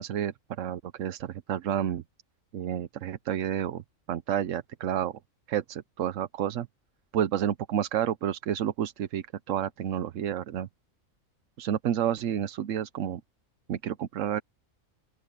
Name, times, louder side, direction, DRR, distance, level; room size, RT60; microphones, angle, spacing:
voice 1, 0.0-2.0 2.5-3.8 4.1-5.1 5.5-6.7 7.1-10.7 11.6-13.2 13.7-14.4, right 10 dB, 75° right, 1.1 m, -30 dB
open air
omnidirectional pair, 1.4 m